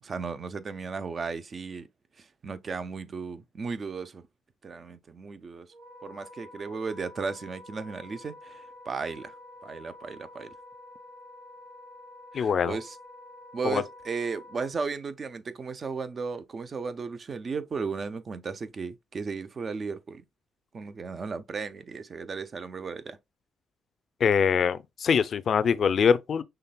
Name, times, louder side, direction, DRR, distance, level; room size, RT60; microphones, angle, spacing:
voice 1, 0.0-1.9 2.2-4.2 4.6-5.7 6.0-9.3 9.6-10.5 12.3-13.0 13.5-20.2 20.7-23.2, right 5 dB, 40° right, 0.6 m, -35 dB
Wind instrument woodwind instrument, 5.7-14.7, left 2 dB, 90° right, 2.4 m, -49 dB
voice 2, 12.3-12.8 13.6-13.8 24.2-26.4, left 6 dB, 55° left, 0.5 m, -23 dB
5.8 x 3.3 x 2.2 m
cardioid pair, 90°, 0 cm